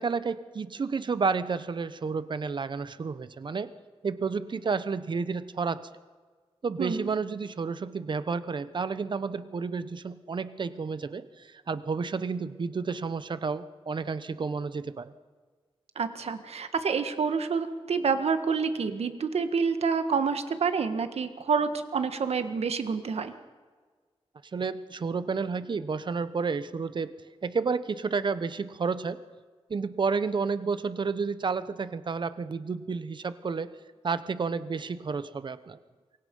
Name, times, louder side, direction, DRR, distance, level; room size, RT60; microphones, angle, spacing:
voice 1, 0.0-3.7 4.0-5.8 6.6-15.1 24.5-27.1 27.4-29.2 29.7-33.7 34.0-35.8, right 5 dB, 50° right, 13 dB, 1.0 m, -31 dB
voice 2, 6.8-7.1 15.9-23.3, right 5 dB, 80° right, 9 dB, 1.7 m, -28 dB
27.0 x 23.5 x 5.5 m, 1.5 s
wide cardioid pair, 160°, 10 cm